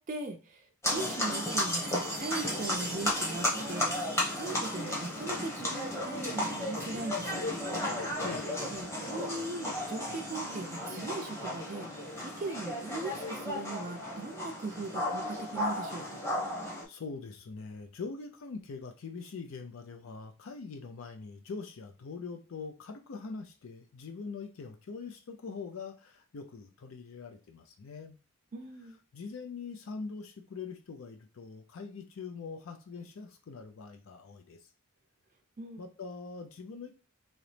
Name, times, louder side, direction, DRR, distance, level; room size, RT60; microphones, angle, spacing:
voice 1, 0.0-4.0 4.3-7.4 8.7-16.2 28.5-29.0 35.6-35.8, right 3 dB, 35° right, 2 dB, 0.4 m, -39 dB
sound 1, 0.8-16.8, left 1 dB, 10° left, 1.1 m, -34 dB
voice 2, 16.6-28.2 29.1-34.6 35.8-37.0, left 4 dB, 65° left, 6 dB, 0.4 m, -43 dB
3.9 x 2.9 x 3.2 m, 0.33 s
head